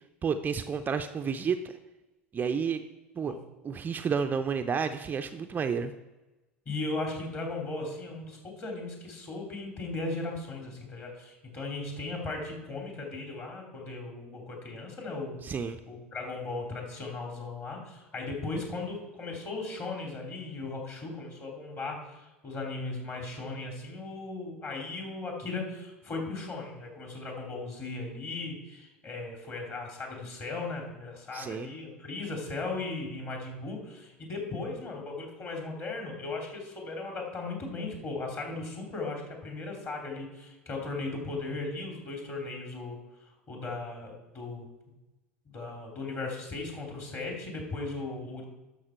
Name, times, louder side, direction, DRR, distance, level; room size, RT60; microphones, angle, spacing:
voice 1, 0.2-1.7 2.3-2.8 3.2-3.3 3.6-5.9 15.4-15.8 31.3-31.7, right 6 dB, 25° right, 7 dB, 0.5 m, -30 dB
voice 2, 6.6-15.4 15.9-43.0 43.5-44.7 45.4-48.5, left 3 dB, 35° left, 0 dB, 3.0 m, -37 dB
12.0 x 6.2 x 4.5 m, 1.1 s
figure-of-eight pair, 75°, 7 cm